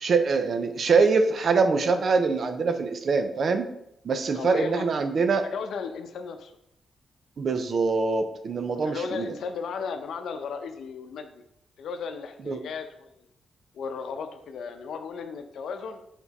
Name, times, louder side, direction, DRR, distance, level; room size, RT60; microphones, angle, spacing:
voice 1, 0.0-3.7 4.0-5.5 7.4-9.2 12.5-12.6, right 4 dB, 50° right, 8 dB, 0.6 m, -24 dB
voice 2, 4.3-5.1 5.4-6.5 8.8-11.4 11.8-13.2 13.7-16.0, left 5 dB, 80° left, 7 dB, 0.7 m, -35 dB
7.1 x 3.7 x 4.1 m, 0.78 s
wide cardioid pair, 150°, 0 cm